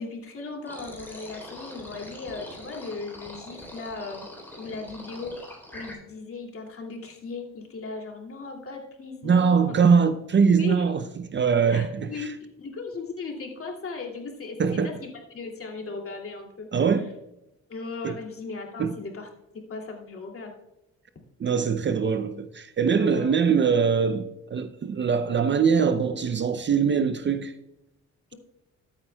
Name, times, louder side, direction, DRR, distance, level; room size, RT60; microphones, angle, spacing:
voice 1, 0.0-4.3 4.6-5.4 5.7-9.8 10.6-10.9 11.7-16.7 17.7-19.3 19.7-20.5 22.9-23.4, left 4 dB, 45° left, 2.5 m, -37 dB
sound 1, 0.7-5.9, left 1 dB, 5° left, 3.8 m, -43 dB
voice 2, 9.2-11.0 11.3-12.3 14.6-14.9 16.7-17.1 18.0-18.2 18.8-18.9 21.4-27.5, right 6 dB, 35° right, 0.6 m, -22 dB
13.0 x 8.9 x 2.3 m
cardioid pair, 90°, 31 cm